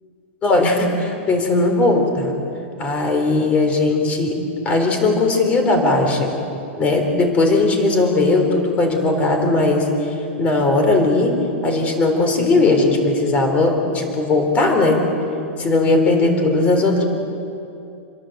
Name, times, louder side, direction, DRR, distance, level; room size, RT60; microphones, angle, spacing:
voice 1, 0.4-2.3 2.8-4.4 4.6-6.3 6.8-11.4 11.6-15.0 15.6-17.0, left 2 dB, 20° left, 4 dB, 4.0 m, -18 dB
28.5 x 22.5 x 8.1 m, 2.6 s
supercardioid pair, 170°, 7 cm